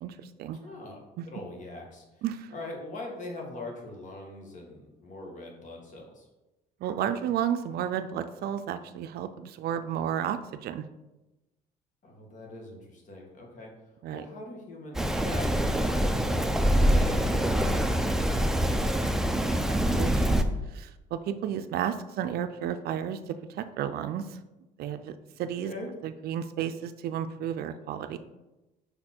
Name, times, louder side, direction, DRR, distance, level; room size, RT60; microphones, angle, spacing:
voice 1, 0.0-0.6 1.2-1.3 2.2-2.5 6.8-10.8 14.0-14.2 19.6-20.4 20.7-24.2 24.8-25.7 26.0-28.2, right 9 dB, 65° right, 10 dB, 0.4 m, -32 dB
voice 2, 0.5-6.3 12.0-13.7 14.1-17.3 25.6-25.9, left 2 dB, 50° left, 0 dB, 1.6 m, -42 dB
Rain, 14.9-20.4, equal, 5° right, 0.4 m, -25 dB
5.3 x 4.2 x 4.4 m, 1.0 s
cardioid pair, 110°, 17 cm